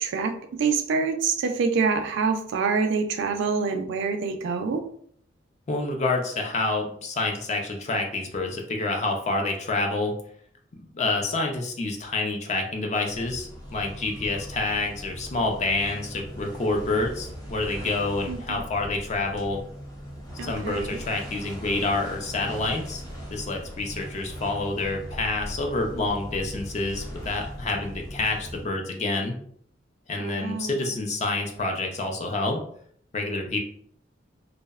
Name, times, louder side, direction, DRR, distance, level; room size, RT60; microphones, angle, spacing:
voice 1, 0.0-4.8 18.3-18.6 20.4-21.0 30.2-31.0, right 5 dB, 65° right, 6 dB, 0.3 m, -26 dB
voice 2, 5.7-10.1 10.8-19.6 20.4-23.0 23.3-29.3 30.1-32.6 33.1-33.6, left 2 dB, 35° left, 3 dB, 0.4 m, -28 dB
sound 1, 13.1-28.8, equal, 20° left, 0.8 m, -39 dB
2.6 x 2.0 x 2.3 m, 0.63 s
head